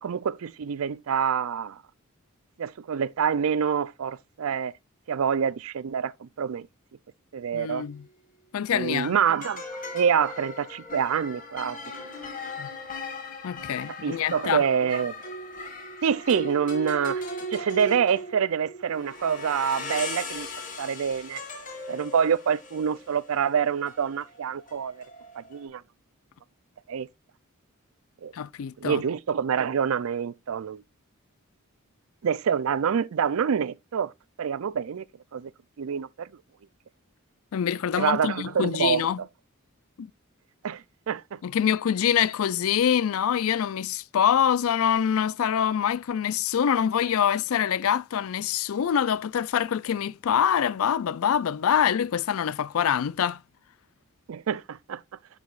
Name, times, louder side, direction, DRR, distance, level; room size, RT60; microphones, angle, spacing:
voice 1, 0.0-1.8 2.6-4.7 5.1-6.7 7.3-7.8 8.7-9.6 9.9-11.8 14.0-15.2 16.0-17.3 17.5-20.5 20.8-21.4 21.9-25.0 25.4-25.8 26.9-27.1 28.2-28.3 28.8-30.8 32.2-34.1 34.4-35.0 35.3-35.5 35.8-36.3 38.0-39.0 40.6-41.4 54.3-55.0, right 7 dB, 70° right, 0.4 m, -26 dB
voice 2, 7.5-8.0 8.5-9.1 12.6-12.7 13.4-14.6 28.3-29.0 37.5-39.2 40.0-40.1 41.4-53.4, left 8 dB, 70° left, 0.4 m, -25 dB
sound 1, 7.8-8.0 8.9-25.6, left 1 dB, 40° left, 2.2 m, -38 dB
10.5 x 4.7 x 2.4 m
head